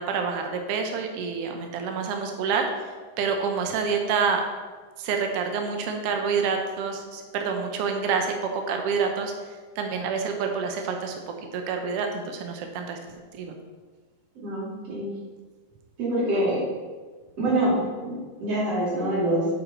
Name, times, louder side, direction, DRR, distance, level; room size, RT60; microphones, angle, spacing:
voice 1, 0.0-2.9 3.2-4.4 5.0-9.3 9.8-11.2 11.5-13.0 13.3-13.6, right 5 dB, 85° right, 3 dB, 1.3 m, -27 dB
voice 2, 14.4-15.1 16.0-16.6 17.4-19.5, right 1 dB, 45° right, -7 dB, 4.1 m, -25 dB
8.6 x 8.0 x 3.8 m, 1.4 s
omnidirectional pair, 3.9 m